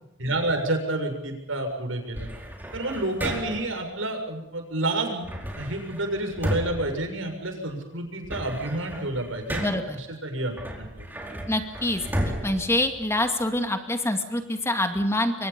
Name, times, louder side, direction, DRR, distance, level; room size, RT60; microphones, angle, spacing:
voice 1, 0.2-2.3 2.7-5.3 5.6-11.1, right 2 dB, 90° right, 4 dB, 6.9 m, -29 dB
sound 1, 2.1-3.8 5.2-7.7 8.1-10.0 10.5-13.6, equal, 10° right, 4.5 m, -34 dB
voice 2, 9.6-10.0 11.5-12.0 12.4-15.5, left 1 dB, 15° left, 5 dB, 2.3 m, -25 dB
28.5 x 24.0 x 5.5 m, 0.92 s
head